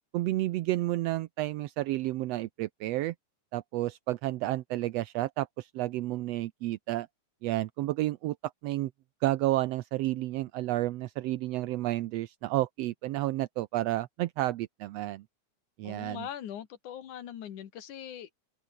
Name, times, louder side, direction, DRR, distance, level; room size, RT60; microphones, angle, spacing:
voice 1, 0.1-3.1 3.5-7.1 7.4-8.4 8.6-8.9 9.2-15.2 15.8-16.3, right 16 dB, 75° right, 1.6 m, -31 dB
voice 2, 15.8-18.3, left 10 dB, 80° left, 3.2 m, -41 dB
omnidirectional pair, 3.5 m